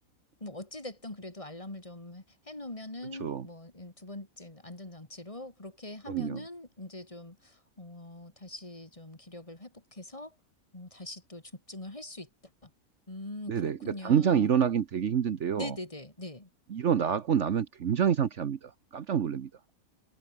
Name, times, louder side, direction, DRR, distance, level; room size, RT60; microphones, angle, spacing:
voice 1, 0.4-10.3 10.7-11.4 11.7-12.3 12.6-12.7 13.1-14.6 15.6-16.5, left 2 dB, 25° left, 2.4 m, -43 dB
voice 2, 6.1-6.4 13.5-15.8 16.7-19.5, right 8 dB, 55° right, 1.2 m, -27 dB
omnidirectional pair, 1.5 m